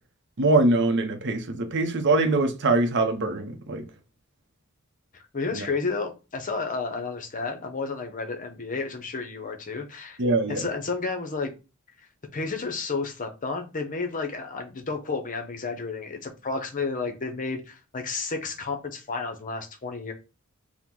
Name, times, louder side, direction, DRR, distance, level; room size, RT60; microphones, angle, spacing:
voice 1, 0.4-3.8 5.5-5.7 10.2-10.6, right 2 dB, 55° right, 0.7 m, -23 dB
voice 2, 5.1-10.2 10.5-11.5 12.3-20.1, left 4 dB, 40° left, 0.7 m, -31 dB
4.5 x 2.1 x 3.7 m
head